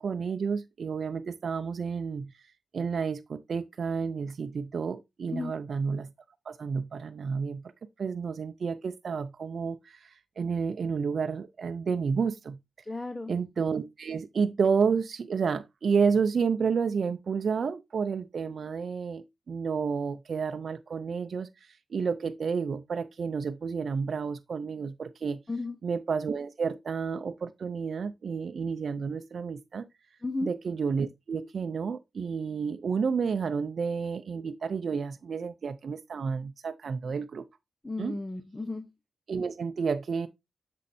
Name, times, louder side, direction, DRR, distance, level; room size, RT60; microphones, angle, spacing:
voice 1, 0.0-2.3 2.7-6.1 6.5-7.6 8.0-12.6 13.3-25.4 25.8-29.8 30.4-37.4 38.0-38.2 39.3-40.3, right 5 dB, 65° right, 0.5 m, -30 dB
voice 2, 12.8-13.3 25.5-25.8 30.2-30.5 37.8-38.9, left 2 dB, 20° left, 0.9 m, -33 dB
8.3 x 6.3 x 2.6 m
cardioid pair, 80°, 0 cm